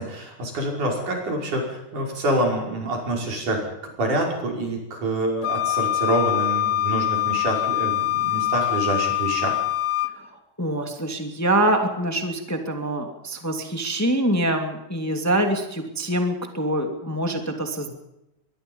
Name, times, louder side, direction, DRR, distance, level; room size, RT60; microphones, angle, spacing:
voice 1, 0.0-9.6, right 1 dB, 75° right, 0 dB, 7.0 m, -26 dB
Wind instrument woodwind instrument, 5.4-10.1, left 13 dB, 90° left, 1.1 m, -24 dB
voice 2, 10.3-17.9, right 1 dB, 5° left, 4 dB, 2.2 m, -25 dB
25.0 x 21.5 x 5.5 m, 0.89 s
omnidirectional pair, 3.6 m